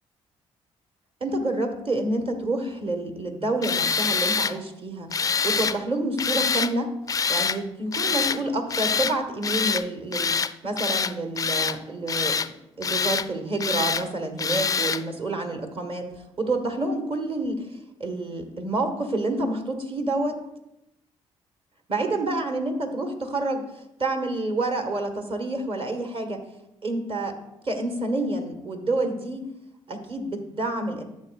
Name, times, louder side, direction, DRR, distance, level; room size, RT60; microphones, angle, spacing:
voice 1, 1.2-5.1 5.4-6.9 7.3-10.3 10.6-12.4 12.8-16.1 16.4-20.4 21.9-26.4 26.8-27.3 27.6-29.5 29.9-31.0, right 2 dB, 35° right, 5 dB, 1.5 m, -28 dB
Tools, 3.6-4.5 5.1-5.8 6.2-6.7 7.1-7.6 7.9-8.4 8.7-9.2 9.4-9.8 10.1-10.5 10.8-11.8 12.1-12.5 12.8-13.3 13.6-14.0 14.4-15.0, left 6 dB, 25° left, 0.4 m, -25 dB
11.5 x 7.5 x 2.5 m, 0.89 s
figure-of-eight pair, 45°, 16 cm